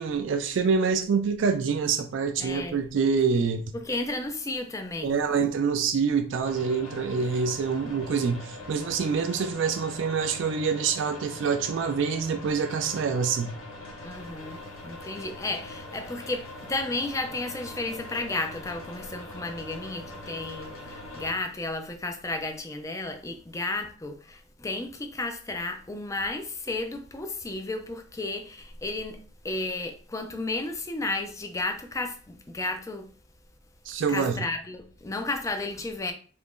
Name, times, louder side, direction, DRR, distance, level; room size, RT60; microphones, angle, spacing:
voice 1, 0.0-3.7 5.0-13.5 33.9-34.4, right 5 dB, 65° right, 0.3 m, -26 dB
voice 2, 2.4-2.8 3.7-5.2 14.0-33.1 34.1-36.1, left 2 dB, 15° left, 0.3 m, -33 dB
sound 1, 6.4-21.3, left 1 dB, 90° left, 0.9 m, -42 dB
2.8 x 2.5 x 3.6 m
head